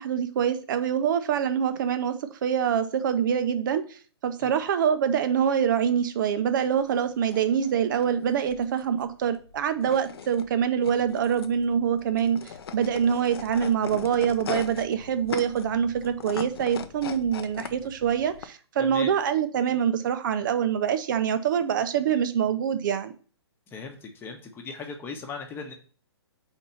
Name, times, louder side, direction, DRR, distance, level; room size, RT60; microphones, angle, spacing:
voice 1, 0.0-23.1, right 8 dB, 45° right, 0.6 m, -25 dB
sound 1, 6.5-18.4, left 7 dB, 60° left, 0.6 m, -40 dB
voice 2, 18.8-19.1 23.7-25.7, left 4 dB, 15° left, 1.0 m, -38 dB
4.4 x 4.0 x 5.5 m
figure-of-eight pair, 130°, 14 cm